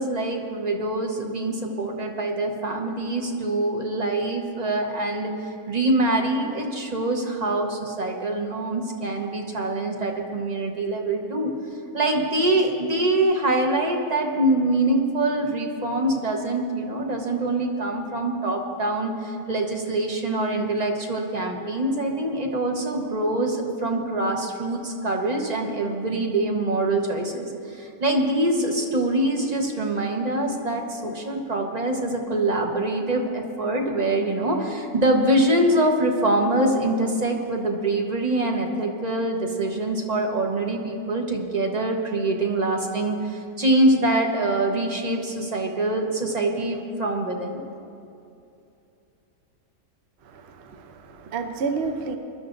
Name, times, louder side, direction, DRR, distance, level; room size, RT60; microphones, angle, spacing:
voice 1, 0.0-5.3 5.7-11.5 11.9-47.6, right 1 dB, 30° right, 1 dB, 1.1 m, -24 dB
voice 2, 50.3-52.2, right 4 dB, 50° right, 6 dB, 0.9 m, -30 dB
21.5 x 12.0 x 2.6 m, 2.7 s
omnidirectional pair, 1.7 m